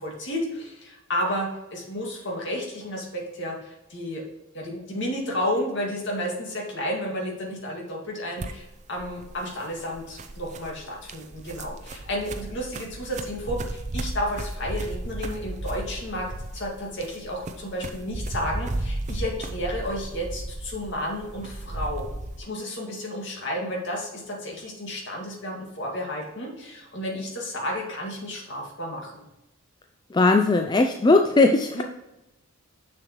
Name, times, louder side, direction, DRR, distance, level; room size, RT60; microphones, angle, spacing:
voice 1, 0.0-4.2 4.5-16.3 16.5-22.1 22.4-29.3 31.7-31.8, equal, 55° left, -1 dB, 2.0 m, -32 dB
sound 1, 8.4-22.4, right 1 dB, 35° right, 0.6 m, -35 dB
voice 2, 30.1-31.8, left 3 dB, 20° left, 4 dB, 0.3 m, -19 dB
7.1 x 6.7 x 3.0 m, 0.92 s
head